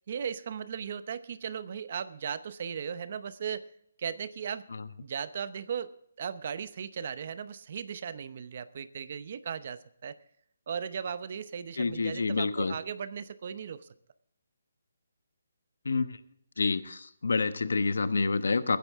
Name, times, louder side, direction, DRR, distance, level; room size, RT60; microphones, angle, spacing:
voice 1, 0.1-3.7 4.0-4.7 5.0-10.2 10.7-13.9, right 7 dB, 40° right, 14 dB, 0.8 m, -37 dB
voice 2, 11.8-12.7 15.8-16.2 16.6-18.8, left 4 dB, 80° left, 12 dB, 1.1 m, -28 dB
22.5 x 10.0 x 3.6 m, 0.71 s
hypercardioid pair, 170°, 0 cm